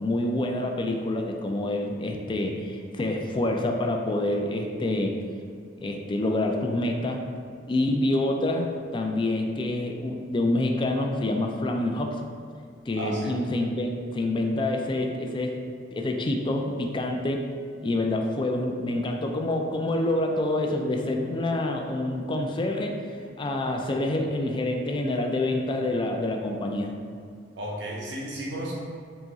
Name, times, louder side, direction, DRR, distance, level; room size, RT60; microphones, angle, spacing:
voice 1, 0.0-5.2 5.8-7.2 7.7-12.2 12.9-15.6 15.9-17.4 17.8-23.0 23.4-27.0, left 1 dB, 25° left, 2 dB, 0.4 m, -27 dB
voice 2, 13.0-13.3 27.6-28.8, equal, 85° right, -4 dB, 0.8 m, -33 dB
4.0 x 2.9 x 3.5 m, 2.2 s
head